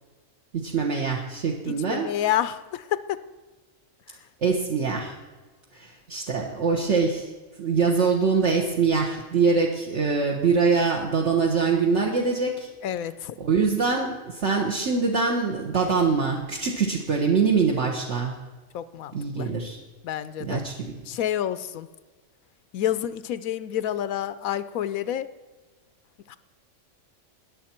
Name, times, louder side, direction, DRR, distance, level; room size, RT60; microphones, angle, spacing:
voice 1, 0.5-2.1 4.4-5.1 5.7-7.3 7.6-12.7 13.4-18.3 19.1-19.8 20.4-20.9, right 5 dB, 60° right, 0 dB, 1.4 m, -24 dB
voice 2, 1.7-3.2 12.8-13.3 18.7-19.5 20.0-20.6 21.1-21.9 22.7-25.3 26.3-26.4, left 11 dB, 85° left, 14 dB, 1.1 m, -29 dB
20.5 x 7.0 x 4.4 m, 1.3 s
omnidirectional pair, 1.4 m